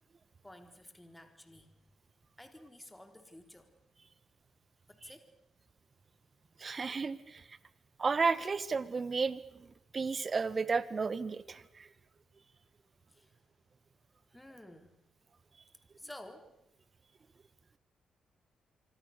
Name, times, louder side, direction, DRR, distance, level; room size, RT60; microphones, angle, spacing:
voice 1, 0.4-1.7 2.4-3.7 4.9-5.3 13.1-13.3 14.3-15.0 16.0-16.5, left 1 dB, 10° left, 7 dB, 3.8 m, -52 dB
voice 2, 6.6-7.6 8.0-9.7 9.9-11.9, right 4 dB, 45° right, 16 dB, 1.7 m, -33 dB
26.0 x 25.5 x 6.8 m, 0.81 s
hypercardioid pair, 45°, 0 cm